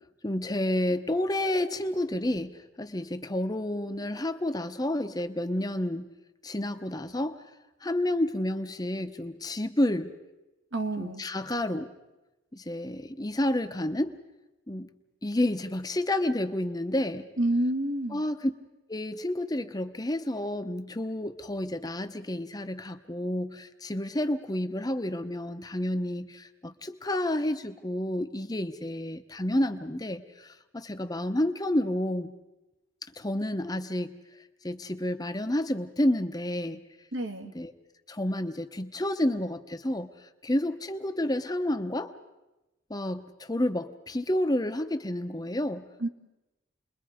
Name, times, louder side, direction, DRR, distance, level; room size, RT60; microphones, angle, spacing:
voice 1, 0.2-6.1 6.4-7.4 7.8-10.1 11.0-11.9 12.5-14.2 14.7-14.9 15.2-17.3 18.1-18.5 18.9-32.3 33.2-34.2 34.6-36.8 37.4-37.7 38.1-40.1 40.4-42.1 42.9-45.8, left 1 dB, 20° left, 8 dB, 0.8 m, -30 dB
voice 2, 10.7-11.2 17.4-18.2 37.1-37.5 46.0-46.1, right 1 dB, 65° right, 5 dB, 1.9 m, -28 dB
29.5 x 22.0 x 5.1 m, 1.0 s
head